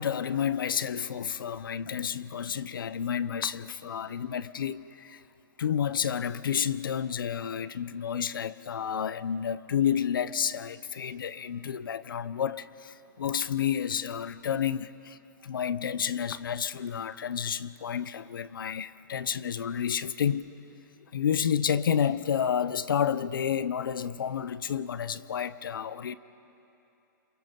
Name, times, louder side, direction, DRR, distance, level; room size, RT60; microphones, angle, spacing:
voice 1, 0.0-5.2 5.6-20.5 21.1-26.2, left 8 dB, 90° left, 0.7 m, -30 dB
29.0 x 28.5 x 3.8 m
hypercardioid pair, 175°, 11 cm